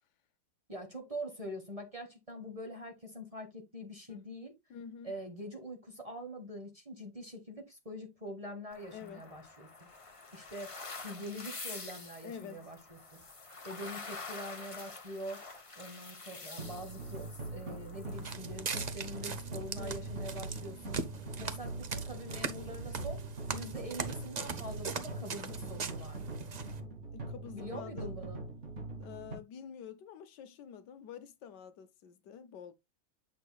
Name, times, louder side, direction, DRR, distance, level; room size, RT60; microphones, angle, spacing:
voice 1, 0.7-4.5 5.0-9.7 10.3-10.7 11.0-13.2 13.6-15.4 15.7-21.1 21.4-23.2 23.5-26.4 27.5-28.4, equal, 20° right, 1.2 m, -44 dB
voice 2, 4.7-5.2 8.9-9.3 12.2-12.7 19.7-20.1 27.1-28.1 29.0-32.7, left 8 dB, 70° left, 1.3 m, -48 dB
sound 1, 8.7-18.3, left 3 dB, 25° left, 0.8 m, -47 dB
sound 2, 16.6-29.4, right 2 dB, 40° right, 2.6 m, -42 dB
Walk footsteps, 18.1-26.8, right 4 dB, 75° right, 0.3 m, -40 dB
8.0 x 6.6 x 2.3 m
omnidirectional pair, 1.9 m